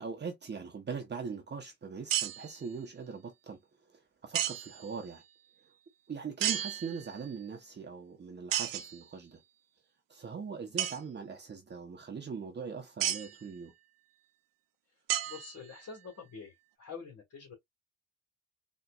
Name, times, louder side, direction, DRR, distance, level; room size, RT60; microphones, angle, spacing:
voice 1, 0.0-3.6 3.9-5.2 6.1-9.4 10.1-13.7, right 5 dB, 35° right, 1.0 m, -41 dB
sound 1, 2.1-2.6 4.3-4.9 6.4-7.3 8.5-9.0 10.8-11.0 13.0-13.4 15.1-15.9, right 12 dB, 90° right, 0.7 m, -33 dB
voice 2, 15.3-17.5, left 5 dB, 55° left, 2.9 m, -46 dB
4.2 x 3.2 x 2.4 m
cardioid pair, 100°, 32 cm